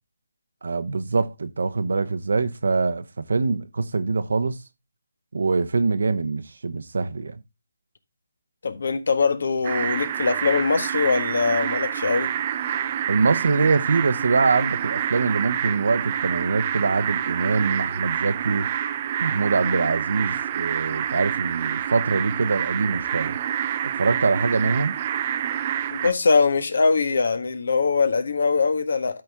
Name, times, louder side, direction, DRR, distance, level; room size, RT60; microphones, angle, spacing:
voice 1, 0.6-4.6 5.3-7.4 13.1-18.7 19.2-23.4 24.0-25.0, right 4 dB, 75° right, 0.9 m, -24 dB
voice 2, 8.6-12.3 25.9-29.2, left 4 dB, 65° left, 1.5 m, -22 dB
sound 1, 9.6-26.1, right 10 dB, 30° right, 0.5 m, -27 dB
12.5 x 4.3 x 3.5 m
hypercardioid pair, 165°, 0 cm